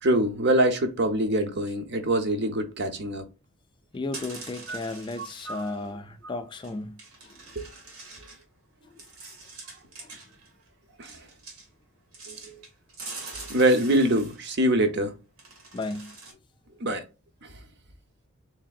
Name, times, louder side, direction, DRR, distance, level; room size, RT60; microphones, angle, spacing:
voice 1, 0.0-3.2 4.7-4.8 5.5-5.8 7.6-7.7 11.0-11.2 12.3-12.6 13.5-15.1 16.8-17.0, right 1 dB, 50° right, 0.7 m, -24 dB
voice 2, 3.9-7.0 7.2-7.4 10.0-10.1 15.7-16.2, left 2 dB, 20° left, 0.3 m, -34 dB
sound 1, 3.9-5.9 6.5-6.7 7.0-8.4 9.0-10.7 11.0-11.7 12.1-14.7 15.4-16.3, right 3 dB, 85° right, 1.5 m, -44 dB
3.8 x 3.3 x 2.4 m
head